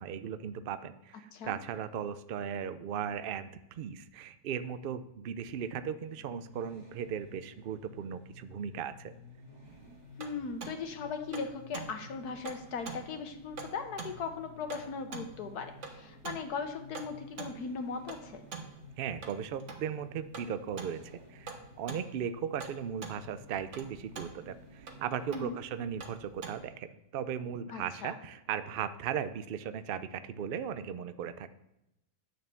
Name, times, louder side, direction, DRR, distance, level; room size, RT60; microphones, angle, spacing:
voice 1, 0.0-9.1 19.0-21.0 21.3-31.5, right 8 dB, 80° right, 12 dB, 0.4 m, -37 dB
sound 1, 6.0-25.3, left 2 dB, 25° right, 2.1 m, -54 dB
sound 2, 9.7-26.6, right 4 dB, 55° right, 1.4 m, -46 dB
voice 2, 10.2-18.4 25.3-25.6 27.7-28.1, left 5 dB, 85° left, 5 dB, 1.5 m, -38 dB
9.1 x 6.5 x 6.9 m, 0.85 s
omnidirectional pair, 1.6 m